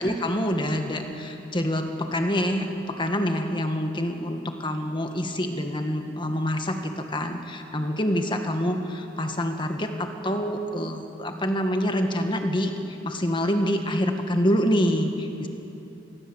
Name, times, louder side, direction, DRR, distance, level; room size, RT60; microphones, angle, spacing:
voice 1, 0.0-12.7 13.0-15.5, equal, 25° left, 5 dB, 1.8 m, -26 dB
26.0 x 19.5 x 8.1 m, 2.9 s
head